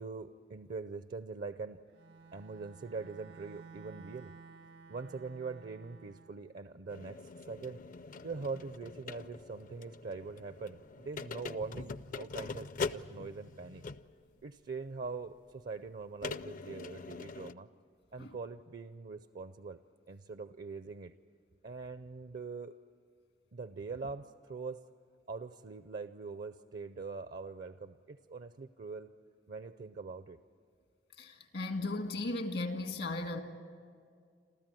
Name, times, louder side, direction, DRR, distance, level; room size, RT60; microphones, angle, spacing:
voice 1, 0.0-1.8 2.3-4.3 4.9-7.2 7.5-7.8 8.2-13.8 14.4-17.7 18.1-19.8 20.1-21.1 21.6-22.7 23.5-24.8 25.3-29.1 29.5-30.4, right 4 dB, 55° right, 0.6 m, -43 dB
Bowed string instrument, 1.9-6.4, right 5 dB, 80° right, 1.5 m, -54 dB
sound 1, 6.9-14.2 15.0-15.1 16.2-17.5, left 4 dB, 50° left, 0.5 m, -43 dB
voice 2, 31.2-33.4, left 2 dB, 80° left, 1.9 m, -36 dB
28.5 x 14.0 x 9.1 m
head